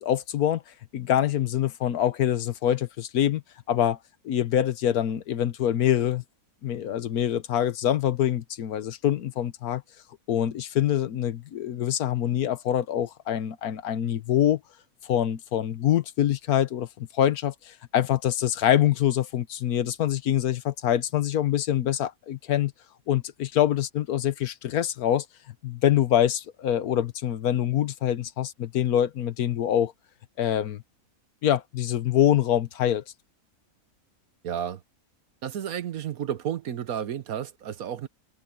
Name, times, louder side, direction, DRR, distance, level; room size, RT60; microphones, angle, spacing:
voice 1, 0.0-3.4 3.7-4.0 4.2-6.2 6.6-9.8 10.3-14.6 15.0-22.7 23.1-25.2 25.6-29.9 30.4-30.8 31.4-33.0, left 11 dB, 90° left, 1.4 m, -25 dB
voice 2, 34.4-34.8 35.4-38.1, right 9 dB, 75° right, 1.4 m, -32 dB
omnidirectional pair, 1.5 m